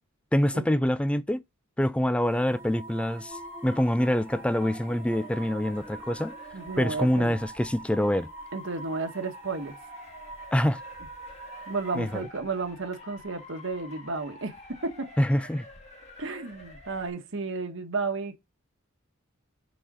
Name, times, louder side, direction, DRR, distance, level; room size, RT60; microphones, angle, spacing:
voice 1, 0.3-1.4 1.8-6.3 6.8-8.3 10.5-10.8 11.9-12.2 15.2-15.7, equal, 5° left, 0.4 m, -25 dB
sound 1, 2.2-12.2, right 3 dB, 10° right, 1.6 m, -45 dB
Motor vehicle (road) / Siren, 3.3-17.1, left 2 dB, 30° left, 2.1 m, -48 dB
voice 2, 6.5-7.4 8.5-9.7 11.7-15.1 16.2-18.4, right 3 dB, 60° right, 1.4 m, -33 dB
6.3 x 4.3 x 6.2 m
head